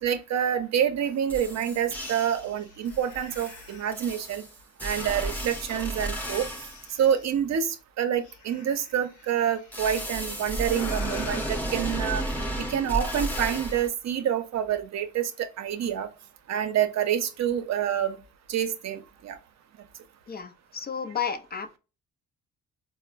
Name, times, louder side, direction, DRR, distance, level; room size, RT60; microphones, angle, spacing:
voice 1, 0.0-4.4 4.8-6.5 7.0-16.1 16.5-18.2 18.5-19.4, right 9 dB, 60° right, 0.6 m, -27 dB
sound 1, 1.0-1.1 1.3-2.5 2.9-6.9 9.7-13.9, right 1 dB, 5° left, 0.8 m, -33 dB
sound 2, 1.4-1.5 1.9-4.2 5.0-7.4 8.2-9.8 10.6-11.6, left 5 dB, 85° left, 0.9 m, -48 dB
voice 2, 20.3-21.8, left 7 dB, 30° left, 0.4 m, -32 dB
4.1 x 2.0 x 2.3 m
cardioid pair, 90°, 30 cm